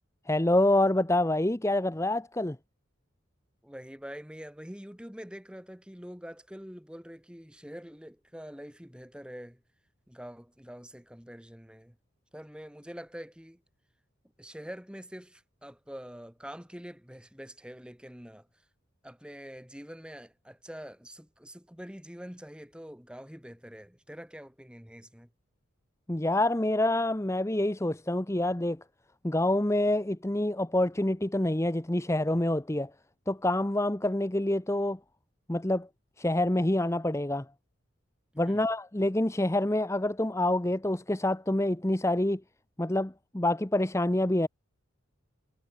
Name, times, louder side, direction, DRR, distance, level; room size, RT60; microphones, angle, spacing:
voice 1, 0.3-2.6 26.1-28.8 29.2-32.9 33.3-35.0 35.5-35.9 36.2-37.5 38.4-42.4 42.8-44.5, left 1 dB, 15° left, 0.8 m, -27 dB
voice 2, 3.6-9.6 10.1-12.0 12.3-13.6 14.4-18.5 19.0-25.3 38.5-38.6, equal, 5° right, 2.4 m, -45 dB
head